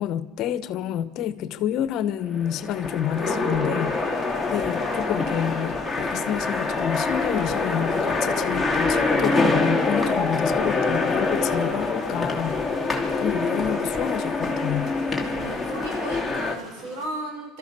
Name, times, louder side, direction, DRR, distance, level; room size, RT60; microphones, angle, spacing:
voice 1, 0.0-12.6 13.1-14.9, left 10 dB, 55° left, 1.0 m, -28 dB
sound 1, 2.2-16.5, left 3 dB, 5° left, 3.0 m, -25 dB
sound 2, 3.8-17.1, equal, 30° right, 6.6 m, -47 dB
voice 2, 15.2-17.6, right 1 dB, 70° right, 5.8 m, -35 dB
30.0 x 13.5 x 6.8 m
supercardioid pair, 110°, 0 cm